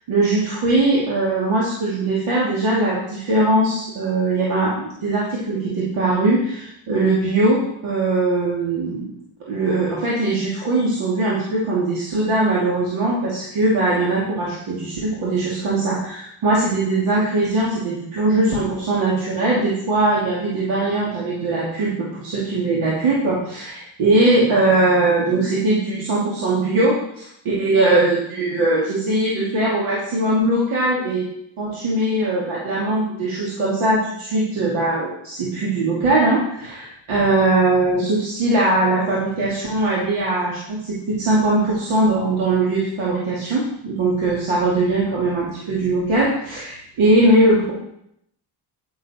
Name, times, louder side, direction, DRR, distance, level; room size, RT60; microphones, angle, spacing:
voice 1, 0.1-4.7 5.0-9.1 9.5-31.2 31.6-47.7, right 2 dB, 75° right, -6 dB, 2.8 m, -20 dB
9.7 x 9.1 x 4.4 m, 0.76 s
cardioid pair, 105°, 50 cm